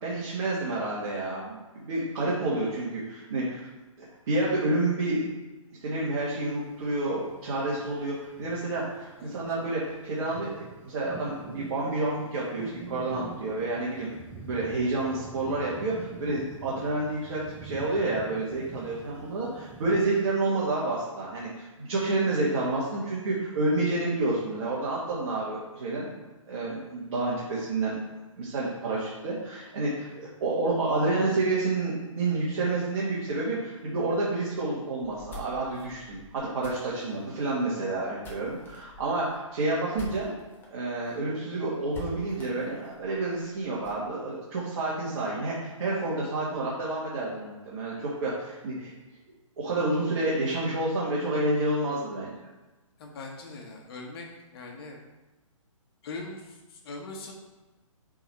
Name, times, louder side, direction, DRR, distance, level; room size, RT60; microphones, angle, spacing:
voice 1, 0.0-3.7 4.0-5.2 5.8-14.1 14.4-26.1 26.5-28.0 28.4-40.3 40.7-48.9 49.6-52.3, right 2 dB, 50° right, -6 dB, 1.9 m, -29 dB
sound 1, 6.2-20.1, right 4 dB, 10° right, 0.6 m, -45 dB
sound 2, 35.0-40.7 41.0-41.1 41.4-41.5 41.9-44.0, left 1 dB, 10° left, 1.3 m, -46 dB
voice 2, 53.0-54.3 54.5-55.0 56.0-57.3, left 3 dB, 45° left, 1 dB, 1.5 m, -41 dB
6.7 x 4.0 x 4.4 m, 1.1 s
hypercardioid pair, 140°, 17 cm